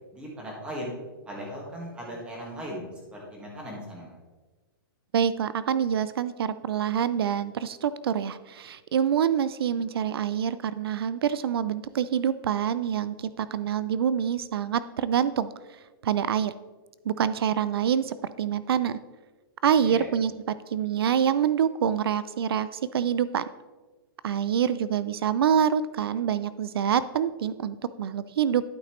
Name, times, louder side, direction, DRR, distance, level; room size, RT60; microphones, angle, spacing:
voice 1, 0.1-1.0 1.2-2.8 3.1-4.1 19.8-20.1, equal, 10° right, -3 dB, 1.7 m, -38 dB
voice 2, 5.1-15.5 16.0-16.5 17.1-19.0 19.6-23.4 24.2-28.6, right 8 dB, 85° right, 15 dB, 0.4 m, -26 dB
12.0 x 5.8 x 3.1 m, 1.3 s
hypercardioid pair, 170°, 12 cm